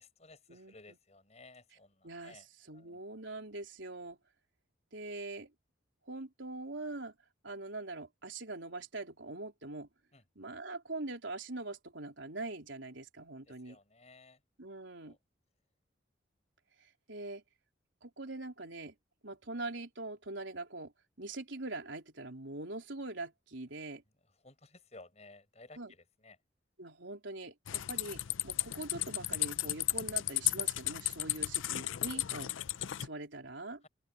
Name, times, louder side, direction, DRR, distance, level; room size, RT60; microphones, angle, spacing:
voice 1, 0.0-2.5 2.7-3.1 10.1-10.2 13.5-14.4 15.0-15.2 24.4-26.4 33.8-33.9, left 2 dB, 35° left, 6.9 m, -57 dB
voice 2, 2.0-4.2 4.9-5.5 6.1-7.1 7.4-9.9 10.4-13.8 14.6-15.2 16.8-17.4 18.0-18.9 19.2-20.9 21.2-24.0 25.8-25.9 26.8-32.5 33.0-33.8, right 2 dB, 80° right, 3.8 m, -43 dB
sound 1, 27.7-33.1, left 15 dB, 90° left, 0.5 m, -34 dB
open air
head